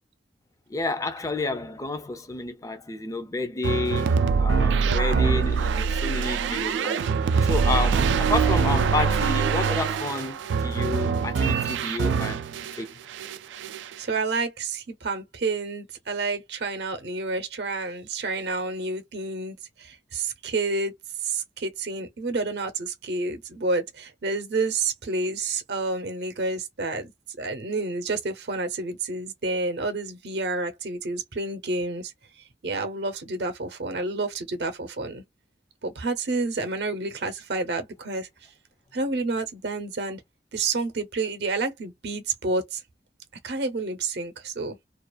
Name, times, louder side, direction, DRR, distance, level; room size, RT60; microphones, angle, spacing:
voice 1, 0.7-7.0 7.5-12.4 12.8-12.9, left 3 dB, 20° left, 0.4 m, -30 dB
sound 1, 3.6-12.8 13.1-13.9, right 5 dB, 90° right, 0.3 m, -24 dB
voice 2, 4.9-5.3 14.0-20.9 21.2-27.1 27.4-32.1 32.6-35.2 35.8-38.3 38.9-40.2 40.5-42.8 43.4-44.8, right 3 dB, 70° right, 0.7 m, -29 dB
2.4 x 2.3 x 2.2 m
head